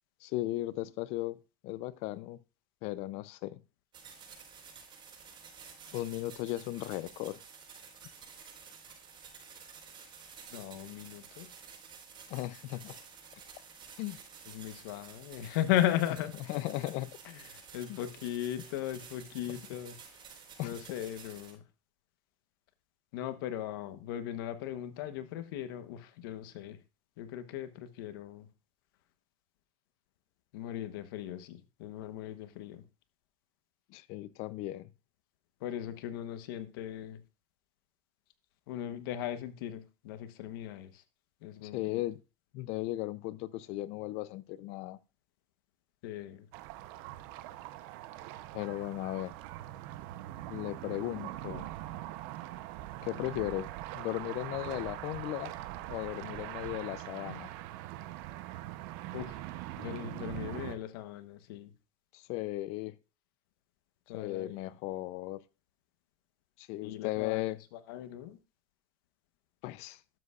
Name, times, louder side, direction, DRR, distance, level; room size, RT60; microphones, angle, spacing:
voice 1, 0.2-1.4 1.6-2.4 2.8-3.6 5.9-7.4 12.3-13.0 14.0-14.2 16.4-17.2 17.9-18.0 19.5-19.6 20.6-20.9 33.9-34.9 41.6-42.2 42.5-45.0 48.5-49.3 50.5-51.7 53.0-53.7 53.9-55.5 55.9-57.5 62.1-63.0 64.1-65.4 66.6-67.6 69.6-70.0, left 17 dB, 65° left, 0.6 m, -36 dB
sound 1, 3.9-21.5, right 6 dB, 45° right, 4.6 m, -52 dB
voice 2, 10.5-11.5 14.5-16.3 17.7-20.0 20.6-21.6 23.1-26.8 27.2-28.5 30.5-32.8 35.6-37.2 38.7-40.9 41.4-42.0 46.0-46.4 59.1-59.4 59.8-61.7 64.1-64.5 66.8-67.4 67.9-68.4, left 12 dB, 80° left, 1.1 m, -37 dB
sound 2, 46.5-60.8, right 15 dB, 70° right, 0.8 m, -42 dB
12.5 x 7.7 x 2.4 m
supercardioid pair, 100°, 12 cm